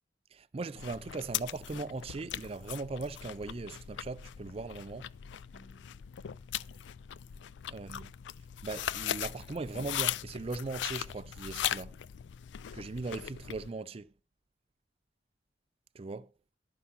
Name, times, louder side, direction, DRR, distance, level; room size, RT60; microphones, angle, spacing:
voice 1, 0.3-5.1 7.7-8.1 8.6-12.0 12.7-14.1 15.9-16.3, right 3 dB, 30° right, 0.4 m, -39 dB
sound 1, 0.8-13.7, left 11 dB, 80° left, 0.4 m, -39 dB
sound 2, 5.5-9.4, left 1 dB, 35° left, 0.8 m, -65 dB
11.5 x 5.6 x 5.5 m
head